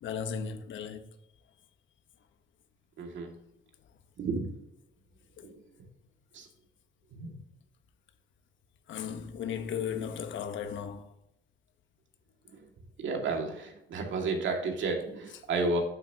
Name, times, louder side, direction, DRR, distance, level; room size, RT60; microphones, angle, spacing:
voice 1, 0.0-1.1 5.4-5.6 8.9-11.1, left 7 dB, 75° left, 1.1 m, -36 dB
voice 2, 3.0-3.3 4.2-4.5 5.4-5.5 6.3-6.5 7.1-7.4 13.0-15.8, right 3 dB, 70° right, 2.1 m, -32 dB
9.3 x 7.4 x 2.8 m
cardioid pair, 90°, 20 cm